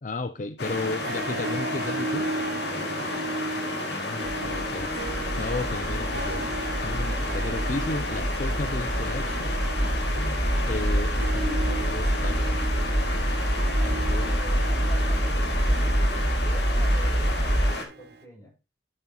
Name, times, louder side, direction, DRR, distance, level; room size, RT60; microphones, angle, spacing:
voice 1, 0.0-2.3 3.9-4.9 5.4-6.5 6.8-9.6 10.1-12.6 13.9-14.3, left 3 dB, 45° left, 0.5 m, -34 dB
sound 1, 0.6-17.8, left 2 dB, 65° left, 2.4 m, -32 dB
Harp, 0.6-18.2, right 2 dB, 60° right, 0.8 m, -37 dB
voice 2, 2.7-3.3 13.7-18.5, left 1 dB, 20° left, 6.6 m, -46 dB
sound 2, 4.2-17.7, right 1 dB, 15° right, 0.6 m, -26 dB
12.0 x 7.2 x 3.0 m
head